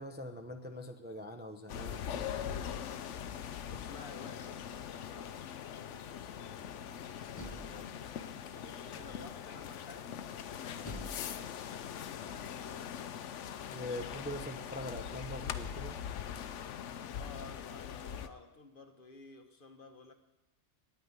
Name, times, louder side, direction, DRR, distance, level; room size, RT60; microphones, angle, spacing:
voice 1, 0.0-2.3 13.7-16.0, left 1 dB, 10° right, 5 dB, 0.6 m, -43 dB
sound 1, 1.7-18.3, left 8 dB, 80° left, 1.0 m, -42 dB
voice 2, 3.7-6.8 7.3-10.2 10.7-11.9 17.1-20.1, left 3 dB, 50° left, 7 dB, 1.0 m, -54 dB
Door, 7.3-8.3 8.9-9.5 10.8-12.7, left 1 dB, 15° left, 1.4 m, -49 dB
9.4 x 9.2 x 9.5 m, 1.0 s
omnidirectional pair, 1.2 m